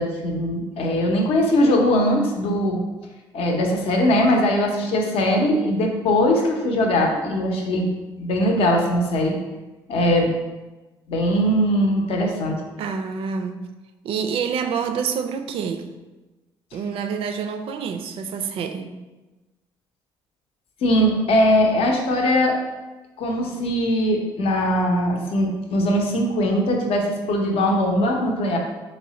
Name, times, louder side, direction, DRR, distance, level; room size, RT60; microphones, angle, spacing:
voice 1, 0.0-2.8 3.3-9.4 9.9-10.3 11.1-12.6 20.8-22.6 23.2-28.6, left 1 dB, 65° left, 0.6 m, -20 dB
voice 2, 12.8-13.7 14.0-15.9 16.7-18.9, right 6 dB, 60° right, 0.4 m, -27 dB
3.2 x 2.1 x 3.8 m
supercardioid pair, 75°, 11 cm